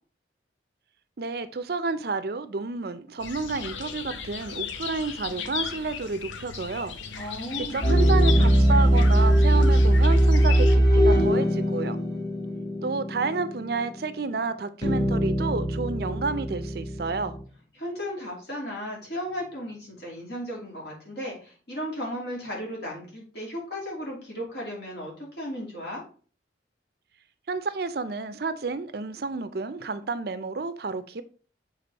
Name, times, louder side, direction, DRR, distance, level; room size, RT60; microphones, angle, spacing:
voice 1, 1.2-7.3 7.7-12.0 12.8-17.3 27.5-31.2, right 4 dB, 55° right, 0.5 m, -30 dB
sound 1, 3.2-10.8, left 6 dB, 80° left, 0.7 m, -36 dB
voice 2, 7.1-8.1 17.7-26.0, equal, 60° left, 2.8 m, -35 dB
sound 2, 7.8-14.0 14.8-17.4, right 1 dB, 20° left, 1.6 m, -21 dB
6.8 x 4.1 x 4.0 m
head